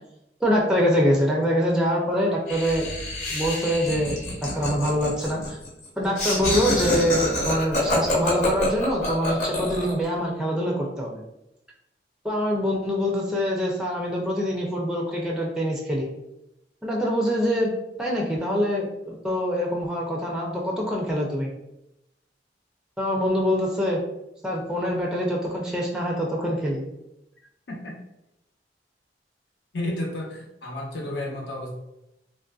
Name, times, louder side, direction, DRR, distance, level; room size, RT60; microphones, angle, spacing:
voice 1, 0.4-2.9 3.3-5.6 6.0-11.2 12.2-16.1 16.8-21.5 23.0-24.0 24.4-26.9, equal, 5° right, -3 dB, 0.4 m, -25 dB
Laughter, 2.5-10.0, left 1 dB, 40° left, 0.8 m, -27 dB
voice 2, 29.7-31.7, left 1 dB, 80° left, -1 dB, 0.8 m, -32 dB
3.2 x 2.5 x 2.3 m, 0.86 s
head